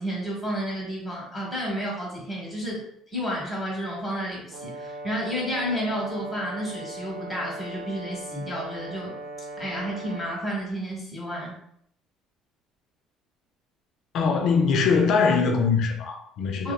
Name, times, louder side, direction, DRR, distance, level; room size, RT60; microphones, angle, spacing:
voice 1, 0.0-2.8 3.1-9.1 9.6-11.6 16.6-16.7, equal, 15° left, 1.0 m, -31 dB
Brass instrument, 4.5-10.3, right 2 dB, 65° right, 0.3 m, -39 dB
voice 2, 14.1-16.7, left 5 dB, 60° left, 0.4 m, -22 dB
2.9 x 2.1 x 2.2 m
cardioid pair, 140°, 0 cm